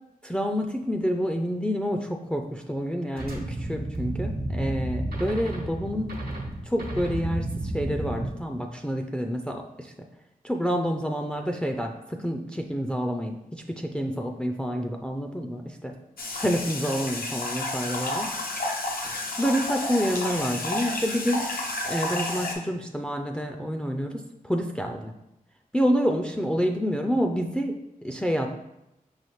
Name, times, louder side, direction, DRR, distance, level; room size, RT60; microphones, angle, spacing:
voice 1, 0.2-6.2 6.7-9.9 10.4-13.4 13.8-15.9 16.4-18.3 19.4-21.4 21.9-25.1 25.7-27.8 28.0-28.5, equal, 5° left, 3 dB, 0.4 m, -28 dB
sound 1, 3.2-8.3, right 1 dB, 90° right, 1.0 m, -31 dB
sound 2, 16.2-22.5, left 2 dB, 75° left, 0.7 m, -31 dB
5.6 x 2.5 x 3.1 m, 0.87 s
wide cardioid pair, 65°, 15 cm